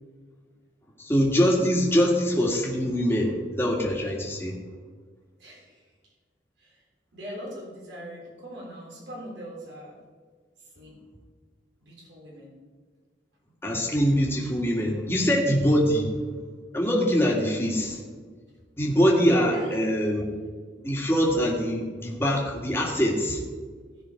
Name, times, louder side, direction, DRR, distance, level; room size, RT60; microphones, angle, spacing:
voice 1, 1.0-4.6 13.6-16.1 16.7-18.0 18.8-20.2 20.8-23.4, equal, 15° left, -2 dB, 1.9 m, -23 dB
voice 2, 5.4-5.9 6.6-6.8 7.1-10.0 10.6-11.0 11.8-12.5 19.5-19.8, equal, 80° right, -3 dB, 3.5 m, -41 dB
16.0 x 6.1 x 4.6 m, 1.5 s
head